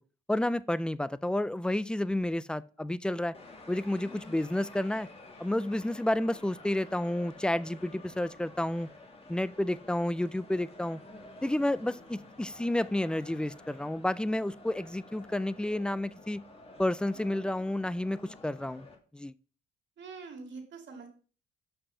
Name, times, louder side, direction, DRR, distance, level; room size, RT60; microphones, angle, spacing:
voice 1, 0.3-3.3 3.7-5.1 5.4-8.9 9.3-11.0 11.4-16.4 16.8-18.9 19.1-19.3, left 1 dB, 5° left, 0.3 m, -30 dB
sound 1, 3.3-19.0, left 2 dB, 30° left, 1.8 m, -51 dB
voice 2, 20.0-21.1, right 4 dB, 65° right, 2.2 m, -44 dB
6.2 x 4.8 x 5.5 m
cardioid pair, 90°, 20 cm